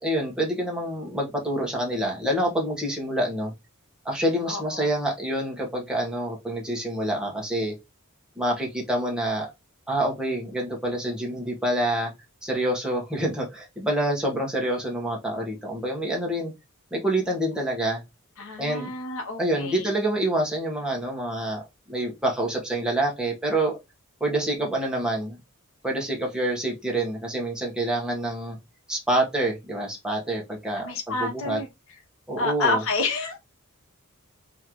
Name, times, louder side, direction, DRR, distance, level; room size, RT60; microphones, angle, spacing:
voice 1, 0.0-3.5 4.0-7.7 8.4-9.5 9.9-12.1 12.4-16.5 16.9-18.0 18.6-18.9 19.4-23.8 24.2-25.4 25.8-28.6 28.9-30.9 31.2-31.6 32.3-32.8, right 1 dB, 5° right, 1.4 m, -27 dB
voice 2, 4.5-5.0 18.4-19.9 30.7-31.7 32.4-33.4, left 3 dB, 65° left, 1.1 m, -29 dB
3.8 x 3.2 x 3.1 m
head